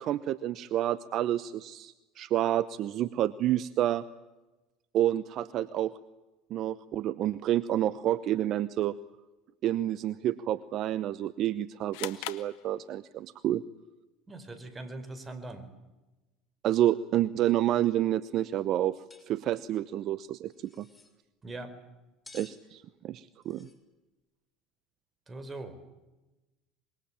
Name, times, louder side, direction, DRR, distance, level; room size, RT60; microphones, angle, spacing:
voice 1, 0.0-4.0 4.9-5.9 6.5-9.0 9.6-13.6 16.6-20.5 20.8-20.9 22.3-23.7, right 12 dB, 55° right, 17 dB, 0.9 m, -29 dB
sound 1, 11.9-13.3, left 18 dB, 70° left, 1.5 m, -41 dB
voice 2, 14.3-15.7 21.4-21.7 25.3-25.9, right 2 dB, 25° right, 12 dB, 4.6 m, -41 dB
sound 2, 19.1-19.3 19.5-19.6 20.5-21.1 22.2-22.6 23.4-23.7, left 3 dB, 15° left, 5.6 m, -53 dB
25.0 x 23.0 x 8.9 m, 1.1 s
hypercardioid pair, 80°, 0 cm